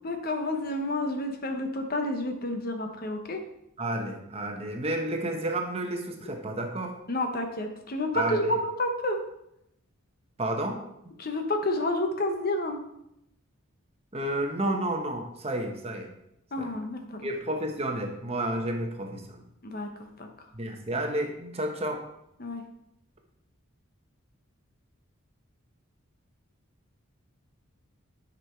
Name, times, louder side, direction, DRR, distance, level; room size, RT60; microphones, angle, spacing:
voice 1, 0.0-3.4 7.1-9.2 11.2-12.8 16.5-17.2 19.6-20.3 22.4-22.6, left 1 dB, 45° left, 5 dB, 0.9 m, -30 dB
voice 2, 3.8-7.0 8.1-8.6 10.4-10.8 14.1-16.1 16.6-16.8 17.2-19.4 20.5-22.0, right 1 dB, 30° right, 3 dB, 0.9 m, -31 dB
9.6 x 5.4 x 4.4 m, 0.80 s
head